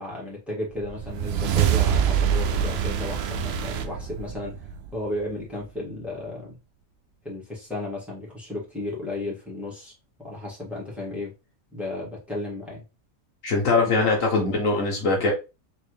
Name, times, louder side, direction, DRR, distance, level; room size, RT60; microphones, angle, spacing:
voice 1, 0.0-4.5 4.9-6.6 7.2-9.9 10.2-11.3 11.7-12.8 13.8-14.5, left 2 dB, ahead, 1.9 m, -34 dB
sound 1, 0.8-5.4, right 8 dB, 65° right, 0.6 m, -25 dB
voice 2, 13.4-15.3, left 3 dB, 65° left, 1.5 m, -22 dB
4.0 x 3.2 x 3.2 m
omnidirectional pair, 1.5 m